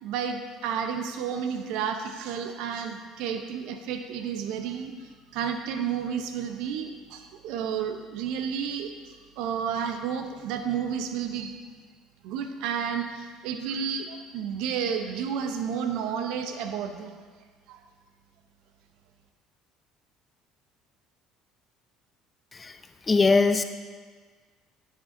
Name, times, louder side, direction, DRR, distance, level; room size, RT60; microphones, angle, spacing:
voice 1, 0.0-8.9 9.4-11.6 12.2-17.1 17.7-17.8, right 7 dB, 70° right, 6 dB, 0.7 m, -31 dB
voice 2, 23.1-23.6, left 3 dB, 25° left, 9 dB, 0.6 m, -20 dB
9.9 x 8.0 x 2.7 m, 1.5 s
hypercardioid pair, 70°, 0 cm